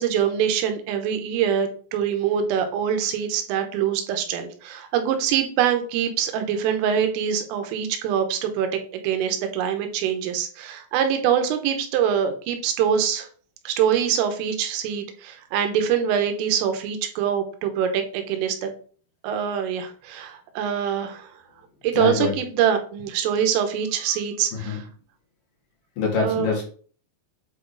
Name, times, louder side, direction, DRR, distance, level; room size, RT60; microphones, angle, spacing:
voice 1, 0.0-13.3 13.7-18.7 19.2-21.3 21.8-24.8 26.2-26.5, right 8 dB, 90° right, 6 dB, 3.6 m, -24 dB
voice 2, 21.9-22.4 24.5-24.9 26.0-26.6, left 5 dB, 55° left, -3 dB, 3.0 m, -24 dB
8.4 x 3.9 x 3.9 m, 0.43 s
omnidirectional pair, 5.6 m